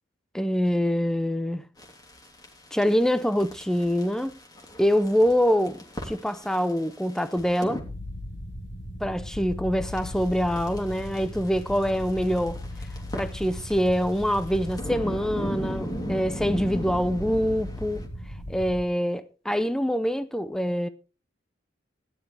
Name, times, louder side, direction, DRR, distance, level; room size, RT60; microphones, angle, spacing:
voice 1, 0.3-1.6 2.7-4.3 4.8-7.8 9.0-12.6 13.1-18.0 18.5-20.9, equal, 5° left, 0.6 m, -25 dB
sound 1, 1.8-7.8 9.9-18.1, equal, 20° left, 3.1 m, -39 dB
sound 2, 7.8-18.8, left 1 dB, 60° left, 4.2 m, -37 dB
17.5 x 11.0 x 3.4 m
head